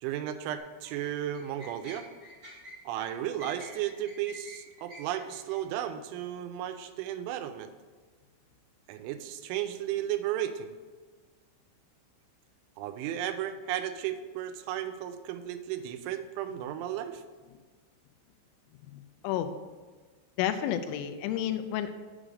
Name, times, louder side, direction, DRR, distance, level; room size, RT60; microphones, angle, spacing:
voice 1, 0.0-2.1 2.9-7.7 8.9-10.7 12.8-17.2, right 11 dB, 85° right, 9 dB, 2.9 m, -34 dB
sound 1, 0.6-5.6, equal, 20° right, 1.3 m, -49 dB
voice 2, 18.9-19.5 20.4-21.9, left 10 dB, 90° left, 9 dB, 3.0 m, -31 dB
7.4 x 5.0 x 6.4 m, 1.4 s
omnidirectional pair, 5.4 m